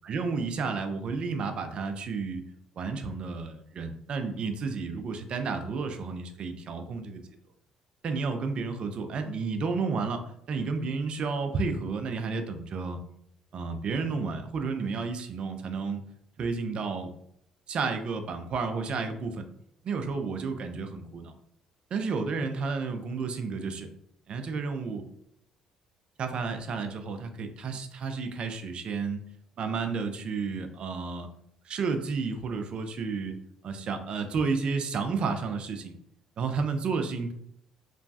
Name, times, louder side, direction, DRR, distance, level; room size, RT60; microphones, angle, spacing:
voice 1, 0.0-2.4 2.8-7.2 8.0-10.2 10.5-13.0 13.5-16.0 16.4-17.1 17.7-19.5 19.8-21.3 21.9-23.9 24.3-25.0 26.2-29.2 29.6-31.3 31.7-33.3 33.6-36.0 36.4-37.3, right 4 dB, 55° right, 7 dB, 0.4 m, -31 dB
3.0 x 2.2 x 2.6 m, 0.73 s
hypercardioid pair, 55°, 2 cm